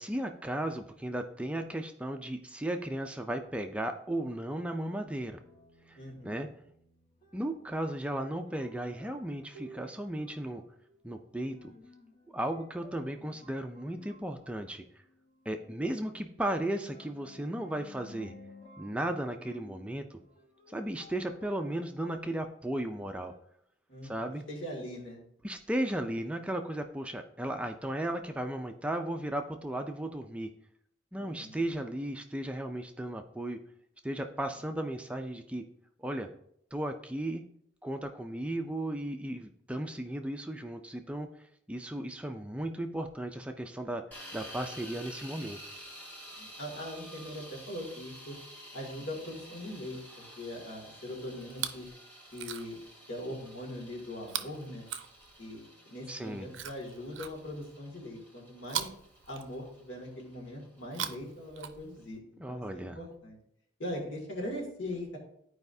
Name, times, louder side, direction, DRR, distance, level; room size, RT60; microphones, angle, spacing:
voice 1, 0.0-5.4 5.9-6.0 6.2-6.5 7.3-10.6 11.0-11.7 12.3-14.8 15.5-18.3 18.8-20.2 20.7-23.3 24.0-24.4 25.4-30.5 31.1-33.6 34.0-35.6 36.0-36.3 36.7-37.4 37.8-45.6 56.1-56.5 62.4-63.0, right 1 dB, 5° right, 5 dB, 0.4 m, -35 dB
sound 1, 5.0-23.4, left 1 dB, 30° left, 1.0 m, -56 dB
voice 2, 6.0-6.5 23.9-25.2 31.2-31.6 46.3-48.4 48.7-51.9 52.3-52.8 53.1-54.8 55.4-58.9 59.3-63.4 63.8-65.2, left 1 dB, 75° left, -1 dB, 2.3 m, -41 dB
sound 2, 44.1-62.0, equal, 10° left, 1.4 m, -51 dB
Chewing mastication, 51.4-51.9 52.3-52.9 54.2-55.6 56.5-57.8 58.6-59.9 60.8-62.2 63.1-63.2, right 10 dB, 70° right, 0.5 m, -40 dB
13.0 x 4.8 x 2.7 m, 0.71 s
head